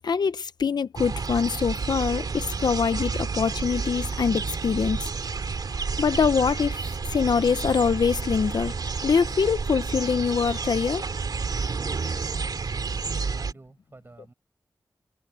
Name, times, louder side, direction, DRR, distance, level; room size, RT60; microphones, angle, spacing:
voice 1, 0.0-5.1 6.0-8.7 9.0-11.0, left 6 dB, 75° left, 0.7 m, -24 dB
sound 1, 1.0-13.5, right 4 dB, 70° right, 2.8 m, -30 dB
voice 2, 13.1-14.3, right 2 dB, 30° right, 7.5 m, -50 dB
wide cardioid pair, 110°, 7 cm